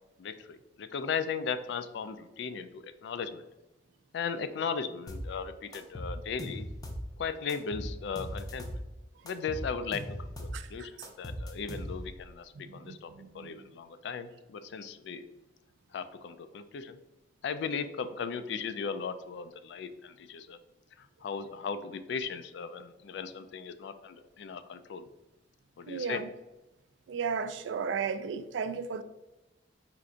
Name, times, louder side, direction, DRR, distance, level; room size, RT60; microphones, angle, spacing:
voice 1, 0.2-3.4 4.1-6.7 7.2-8.7 9.2-10.9 11.2-15.2 15.9-17.0 17.4-20.6 21.0-25.1 25.8-26.2, left 6 dB, 70° left, 0.3 m, -37 dB
sound 1, 5.1-5.3 5.7-7.1 7.5-8.8 9.3-10.6 11.0-12.2, equal, 20° left, 0.6 m, -39 dB
voice 2, 12.8-13.5 25.9-26.2 27.1-29.0, right 5 dB, 75° right, 0.3 m, -34 dB
4.4 x 2.5 x 3.8 m
head